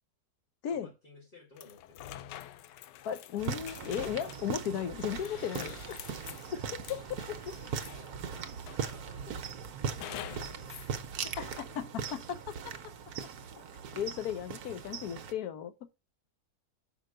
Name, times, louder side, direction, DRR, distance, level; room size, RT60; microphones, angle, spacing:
voice 1, 0.7-2.2 6.3-6.8 8.0-9.4 9.9-11.8 13.4-13.7, left 3 dB, 30° left, 2.6 m, -56 dB
sound 1, 1.6-8.2 8.7-9.3 10.0-10.9, left 12 dB, 85° left, 1.2 m, -47 dB
voice 2, 3.0-6.0 6.5-6.6 6.9-7.0 7.3-7.6 11.4-11.5 11.8-12.6 13.9-15.7, left 9 dB, 65° left, 1.3 m, -35 dB
sound 2, 3.4-15.3, right 7 dB, 65° right, 1.3 m, -40 dB
6.0 x 5.1 x 6.4 m
omnidirectional pair, 1.8 m